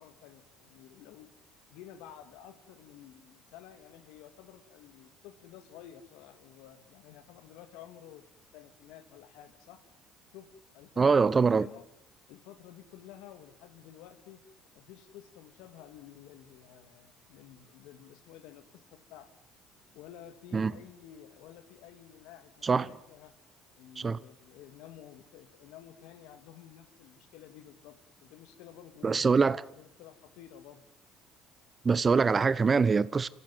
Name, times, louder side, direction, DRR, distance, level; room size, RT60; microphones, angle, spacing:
voice 1, 0.0-1.3 1.7-8.2 8.5-9.8 10.3-10.5 10.7-11.9 12.3-14.4 14.7-19.3 19.9-23.3 23.8-30.8, left 11 dB, 75° left, 2.0 m, -52 dB
voice 2, 11.0-11.7 20.5-20.7 22.6-22.9 24.0-24.2 29.0-29.6 31.8-33.3, right 5 dB, 30° right, 0.8 m, -24 dB
27.5 x 15.0 x 9.5 m
hypercardioid pair, 70°, 0 cm